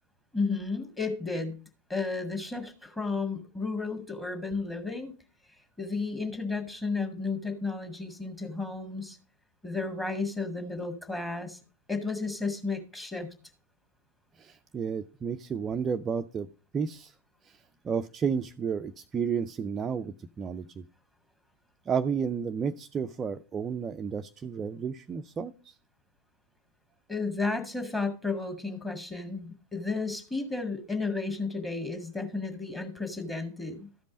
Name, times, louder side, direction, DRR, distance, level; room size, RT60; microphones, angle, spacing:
voice 1, 0.3-1.6 1.9-5.1 5.8-9.2 9.6-11.6 11.9-13.3 27.1-34.0, left 3 dB, 10° left, 5 dB, 1.7 m, -33 dB
voice 2, 14.4-16.5 16.7-17.1 17.4-20.8 21.9-25.8, right 6 dB, 20° right, 7 dB, 0.4 m, -32 dB
13.0 x 5.2 x 5.1 m, 0.36 s
figure-of-eight pair, 90°, 0 cm